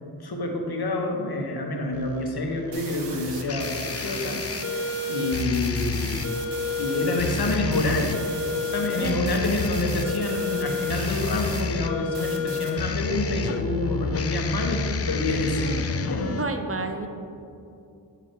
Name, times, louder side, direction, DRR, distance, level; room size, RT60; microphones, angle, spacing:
voice 1, 0.2-6.2 6.8-8.2 8.5-14.8 15.1-16.4, left 2 dB, 60° left, 1 dB, 1.1 m, -27 dB
sound 1, 1.9-16.4, left 5 dB, 35° left, 0.4 m, -30 dB
sound 2, 2.7-11.6 12.1-12.7, right 5 dB, 75° right, 0.9 m, -39 dB
voice 2, 15.6-15.9 16.3-17.1, right 3 dB, 30° right, 5 dB, 0.7 m, -31 dB
8.9 x 4.0 x 4.5 m, 2.7 s
cardioid pair, 60°, 43 cm